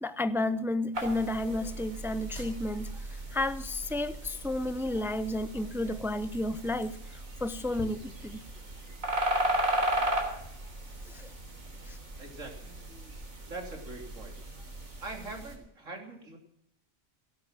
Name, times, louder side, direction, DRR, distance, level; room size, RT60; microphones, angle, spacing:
voice 1, 0.0-8.4 11.1-11.3 11.9-12.0, left 1 dB, 5° right, 0.4 m, -32 dB
sound 1, 0.9-15.6, right 1 dB, 90° right, 3.9 m, -36 dB
sound 2, 2.3-11.8, left 1 dB, 20° left, 6.6 m, -54 dB
voice 2, 12.2-12.8 13.5-14.4 15.0-16.4, right 2 dB, 70° right, 3.5 m, -42 dB
17.0 x 11.5 x 6.1 m
omnidirectional pair, 1.4 m